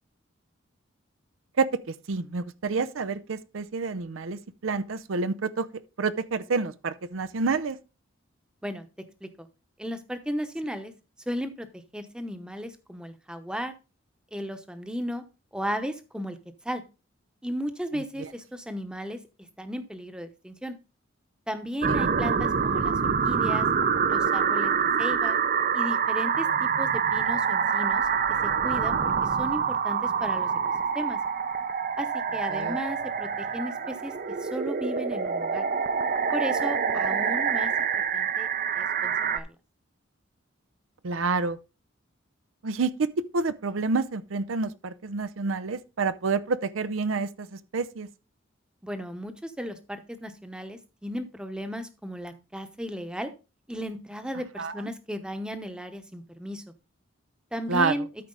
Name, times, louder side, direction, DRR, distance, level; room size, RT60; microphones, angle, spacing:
voice 1, 1.6-5.7 6.0-7.8 17.9-18.3 21.9-22.0 32.5-32.8 41.0-41.6 42.6-43.1 43.3-48.1 54.6-54.7 57.7-58.0, right 4 dB, 85° right, 0.6 m, -28 dB
voice 2, 9.8-10.9 11.3-11.7 11.9-13.7 14.3-15.2 15.5-16.4 16.6-16.8 17.4-19.2 19.6-20.7 21.5-22.9 23.2-23.7 24.1-25.4 25.7-28.1 28.4-30.5 30.9-31.2 32.0-34.1 34.4-35.7 36.3-37.7 38.1-38.5 38.7-39.5 48.8-53.3 53.7-56.6 57.5-58.1, equal, 5° right, 0.9 m, -35 dB
sound 1, 21.8-39.4, right 6 dB, 45° right, 0.6 m, -26 dB
13.0 x 4.7 x 3.8 m
head